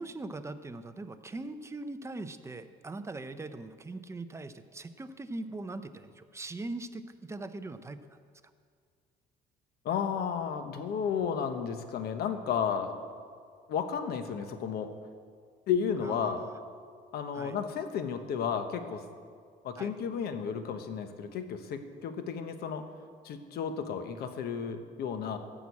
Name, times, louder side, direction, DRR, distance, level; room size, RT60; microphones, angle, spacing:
voice 1, 0.0-8.0 16.0-16.6 17.3-17.6 19.8-19.9, right 2 dB, 15° right, 10 dB, 0.7 m, -41 dB
voice 2, 9.8-13.0 13.7-14.9 15.7-16.4 17.1-19.0 19.6-22.8 23.2-25.4, left 7 dB, 70° left, 8 dB, 1.1 m, -33 dB
14.0 x 6.2 x 8.4 m, 2.1 s
cardioid pair, 110°, 17 cm